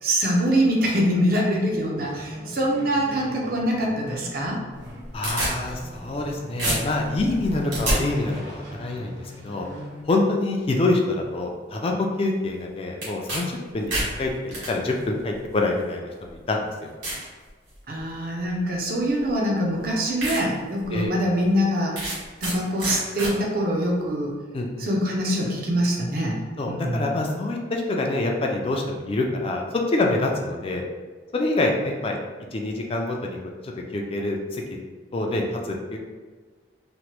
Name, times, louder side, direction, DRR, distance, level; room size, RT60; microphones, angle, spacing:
voice 1, 0.0-4.6 17.9-24.3 24.8-26.4 26.7-27.1, equal, 50° right, -1 dB, 0.6 m, -24 dB
sound 1, 2.0-10.0, equal, 85° right, 0.8 m, -40 dB
sound 2, 4.8-6.3 6.6-8.0 13.0-13.4 13.7-14.7 15.6-15.7 16.3-16.4 17.0-17.3 17.8-18.1 19.3-19.4 19.8-19.9 20.2-20.4 20.8-20.9 22.0-22.5 22.8-23.3, right 1 dB, 70° right, 1.4 m, -28 dB
voice 2, 5.1-9.7 10.1-16.9 20.9-21.1 24.5-24.9 26.6-30.8 31.3-32.2 32.5-33.4 33.6-34.8 35.1-36.0, left 2 dB, 30° left, 1 dB, 0.3 m, -26 dB
3.0 x 2.1 x 3.0 m, 1.4 s
head